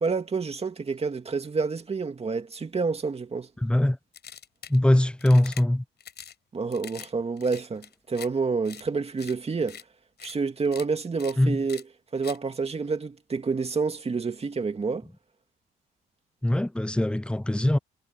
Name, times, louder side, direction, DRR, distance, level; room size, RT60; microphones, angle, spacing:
voice 1, 0.0-3.5 6.5-9.8 10.2-11.8 12.1-15.1, right 4 dB, 30° right, 2.3 m, -28 dB
voice 2, 3.6-4.0 4.7-5.8 11.4-11.6 16.4-17.8, left 1 dB, 5° left, 0.7 m, -22 dB
sound 1, 4.1-4.8 5.2-5.6 6.0-6.3 6.7-7.1 7.4-8.3 8.6-8.8 9.2-9.3 9.7-9.8 10.2-10.3 10.6-10.8 11.2-11.3 11.7-11.8 12.2-12.4, left 8 dB, 55° left, 7.2 m, -43 dB
cardioid pair, 90°, 20 cm